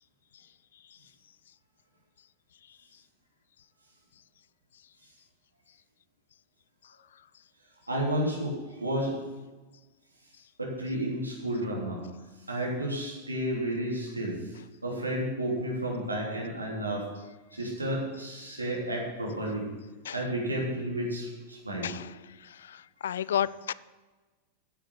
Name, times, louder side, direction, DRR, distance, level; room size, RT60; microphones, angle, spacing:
voice 1, 7.9-9.2 10.6-12.0 12.5-14.5 14.8-17.1 17.5-19.7 20.1-21.9, right 1 dB, 80° right, -2 dB, 3.1 m, -31 dB
voice 2, 22.4-23.7, left 10 dB, 65° left, 20 dB, 0.3 m, -32 dB
9.9 x 8.3 x 7.0 m, 1.2 s
figure-of-eight pair, 90°, 0 cm